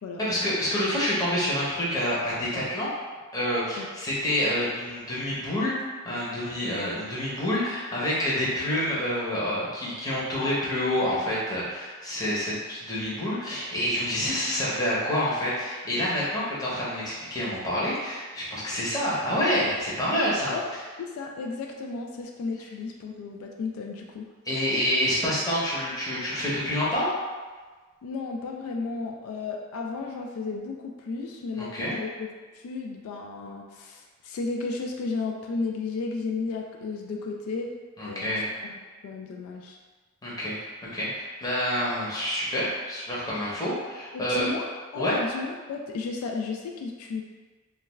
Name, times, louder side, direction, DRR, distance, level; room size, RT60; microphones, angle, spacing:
voice 1, 0.2-2.9 3.3-5.7 6.0-20.5 24.4-27.1 31.6-31.9 38.0-38.5 40.2-44.5 44.9-45.2, equal, 20° left, -8 dB, 0.7 m, -27 dB
voice 2, 21.0-24.3 28.0-32.3 32.6-37.7 38.1-38.3 39.0-39.8 44.1-44.7 44.9-47.2, left 4 dB, 85° left, 3 dB, 0.3 m, -33 dB
2.3 x 2.3 x 3.1 m, 1.4 s
head